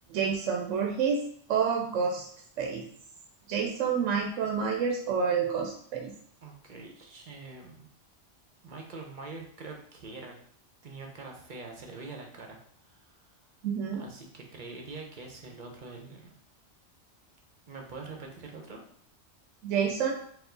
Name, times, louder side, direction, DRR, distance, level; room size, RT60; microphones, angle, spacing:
voice 1, 0.1-1.2 1.5-2.3 2.6-2.8 3.5-6.1 13.6-14.0 19.6-20.1, right 6 dB, 85° right, 2 dB, 0.9 m, -28 dB
voice 2, 6.4-7.9 8.6-10.4 10.8-13.2 14.0-16.3 17.7-18.8, right 3 dB, 50° right, 1 dB, 0.8 m, -44 dB
4.5 x 2.3 x 3.8 m, 0.64 s
omnidirectional pair, 1.2 m